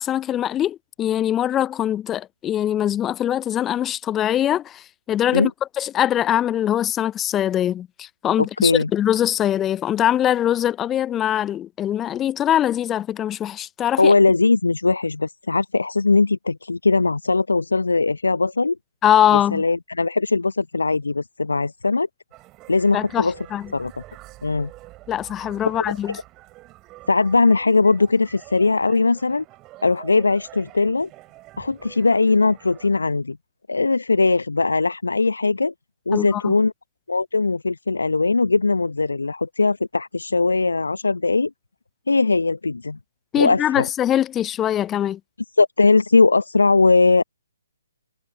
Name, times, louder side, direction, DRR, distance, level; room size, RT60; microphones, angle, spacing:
voice 1, 0.0-5.5 5.8-14.1 19.0-19.6 22.9-23.6 25.1-26.2 36.1-36.5 43.3-45.2, left 11 dB, 15° left, 0.5 m, -22 dB
voice 2, 8.4-8.9 14.0-18.8 19.3-22.1 22.7-23.4 23.7-24.0 24.4-24.7 25.7-25.9 27.1-29.4 29.8-31.1 31.6-33.4 33.7-35.7 36.1-36.7 37.1-41.5 42.1-43.0 43.4-43.9 45.6-47.2, left 3 dB, 75° left, 1.0 m, -20 dB
Fairground Organ, 22.3-32.9, right 19 dB, 20° right, 5.8 m, -46 dB
figure-of-eight pair, 135°, 0 cm